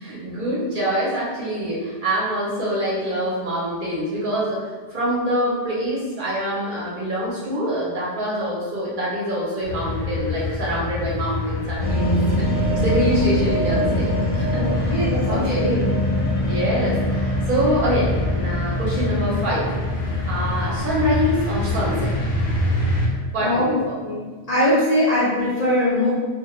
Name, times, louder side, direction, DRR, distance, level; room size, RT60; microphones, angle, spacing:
voice 1, 0.0-15.8 16.4-19.7 20.2-22.1 23.3-24.0, equal, 55° right, -6 dB, 0.7 m, -25 dB
sound 1, 9.6-23.1, left 3 dB, 60° left, 0.7 m, -26 dB
sound 2, 11.8-24.3, right 1 dB, 20° left, 0.8 m, -25 dB
voice 2, 14.5-15.9 23.4-26.1, left 1 dB, 75° left, -7 dB, 0.3 m, -22 dB
2.2 x 2.0 x 2.9 m, 1.4 s
omnidirectional pair, 1.2 m